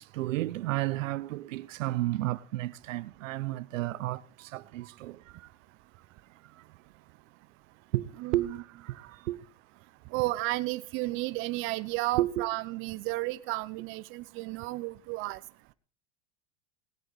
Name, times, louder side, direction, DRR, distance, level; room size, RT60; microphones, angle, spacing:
voice 1, 0.0-5.5 6.4-6.5 7.9-9.4 12.2-12.5, right 16 dB, 85° right, 0.9 m, -32 dB
voice 2, 8.2-8.6 10.1-15.4, right 20 dB, 35° right, 0.7 m, -33 dB
18.5 x 8.2 x 5.8 m
supercardioid pair, 150°, 38 cm